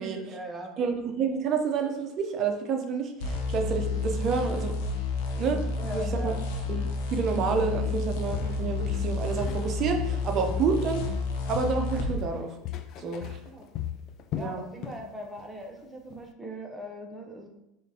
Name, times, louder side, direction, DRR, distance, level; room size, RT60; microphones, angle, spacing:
voice 1, 0.0-0.7 5.8-6.4 13.4-13.7 14.3-17.5, right 1 dB, 10° right, 1 dB, 0.8 m, -40 dB
voice 2, 0.8-4.7 5.3-5.6 5.9-6.3 6.7-11.0 11.5-12.5 13.0-13.4 14.4-14.6, right 5 dB, 45° right, 4 dB, 0.6 m, -29 dB
sound 1, 3.2-12.1, left 3 dB, 80° left, 0.7 m, -30 dB
Walk footsteps, 7.7-7.9 8.3-9.7 10.0-11.3 11.5-15.1 15.4-15.6 16.1-16.2, left 10 dB, 50° left, 0.3 m, -37 dB
5.1 x 2.5 x 2.8 m, 0.86 s
supercardioid pair, 115°, 0 cm